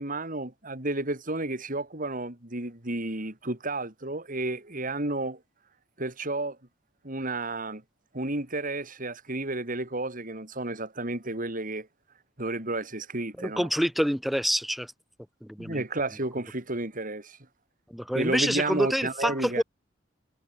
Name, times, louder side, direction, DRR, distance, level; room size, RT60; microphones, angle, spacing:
voice 1, 0.0-5.4 6.0-6.6 7.0-7.8 8.1-11.9 12.4-13.7 15.6-17.4 18.1-19.6, right 2 dB, 45° right, 3.9 m, -32 dB
voice 2, 13.4-14.9 15.4-15.8 17.9-19.6, equal, ahead, 2.6 m, -27 dB
head